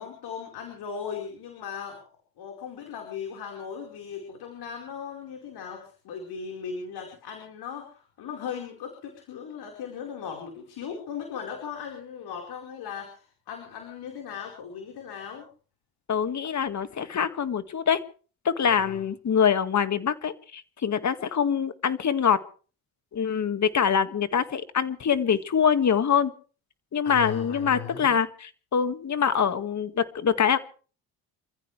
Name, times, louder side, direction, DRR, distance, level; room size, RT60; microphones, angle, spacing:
voice 1, 0.0-2.0 2.4-15.5 18.6-19.0 27.0-28.1, left 7 dB, 70° left, 2 dB, 4.8 m, -38 dB
voice 2, 16.1-18.0 18.4-22.4 23.1-26.3 26.9-30.6, left 7 dB, 45° left, 10 dB, 2.0 m, -24 dB
28.0 x 15.0 x 3.4 m, 0.40 s
supercardioid pair, 75°, 40 cm